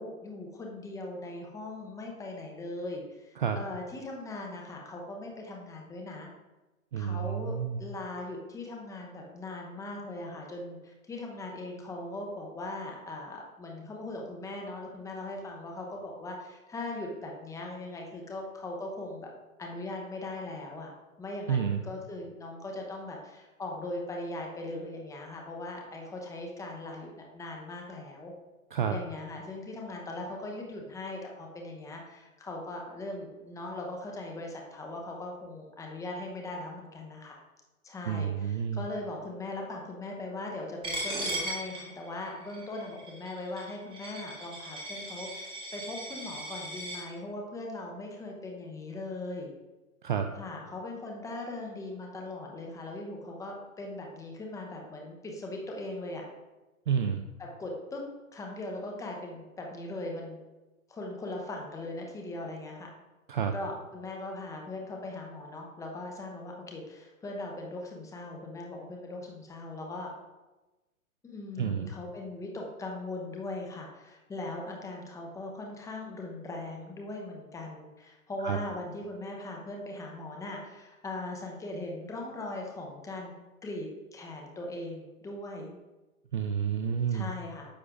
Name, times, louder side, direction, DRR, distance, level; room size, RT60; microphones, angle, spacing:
voice 1, 0.0-6.3 7.0-19.3 19.6-20.9 21.2-28.3 28.9-37.4 37.8-49.5 50.4-56.3 57.4-58.0 58.3-60.4 60.9-62.9 63.5-70.1 71.2-83.3 83.6-85.8 87.1-87.7, left 2 dB, 10° left, 0 dB, 0.8 m, -39 dB
voice 2, 6.9-7.8 21.5-21.8 28.7-28.9 38.1-38.8 50.0-50.3 56.9-57.2 63.3-63.5 71.6-71.9 78.4-78.6 86.3-87.3, right 7 dB, 40° right, 7 dB, 0.4 m, -29 dB
Coin (dropping), 40.8-47.0, right 1 dB, 10° right, 1.6 m, -38 dB
9.8 x 6.5 x 2.5 m, 1.1 s
hypercardioid pair, 130°, 42 cm